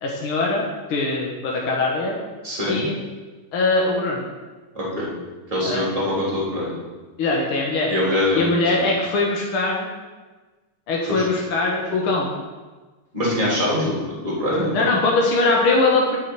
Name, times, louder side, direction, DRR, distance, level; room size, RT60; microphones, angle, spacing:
voice 1, 0.0-2.2 2.7-2.9 3.5-4.2 5.6-5.8 7.2-7.9 8.3-9.9 10.9-12.3 14.7-16.2, left 3 dB, 75° left, -2 dB, 2.2 m, -21 dB
voice 2, 2.4-2.8 4.8-5.1 5.5-6.7 7.9-8.5 8.8-8.9 11.0-11.2 13.1-13.9 14.2-14.9, left 1 dB, 15° right, -5 dB, 3.6 m, -23 dB
7.5 x 6.4 x 8.0 m, 1.3 s
omnidirectional pair, 2.4 m